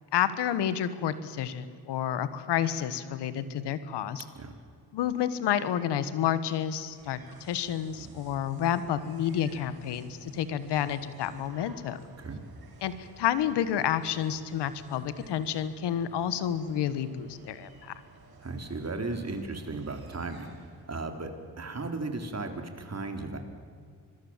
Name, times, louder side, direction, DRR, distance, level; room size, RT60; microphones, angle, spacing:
voice 1, 0.1-4.2 4.9-12.0 12.8-17.9, left 10 dB, 85° left, 14 dB, 1.4 m, -30 dB
sound 1, 6.8-21.0, right 4 dB, 65° right, 4.2 m, -54 dB
voice 2, 18.4-20.5 20.9-23.4, right 3 dB, 40° right, 5 dB, 3.8 m, -36 dB
26.5 x 21.5 x 7.4 m, 2.2 s
supercardioid pair, 55°, 40 cm